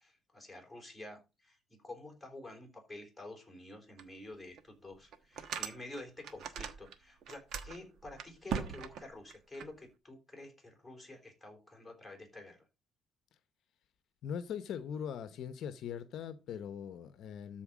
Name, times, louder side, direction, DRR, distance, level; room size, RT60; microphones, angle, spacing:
voice 1, 0.0-12.7, left 2 dB, 5° left, 3.9 m, -49 dB
sound 1, 4.0-4.1 4.6-4.7 5.1-6.9 7.2-9.7, right 7 dB, 65° right, 1.1 m, -40 dB
voice 2, 14.2-17.6, left 8 dB, 60° left, 0.8 m, -41 dB
13.5 x 4.4 x 5.0 m
cardioid pair, 135°, 0 cm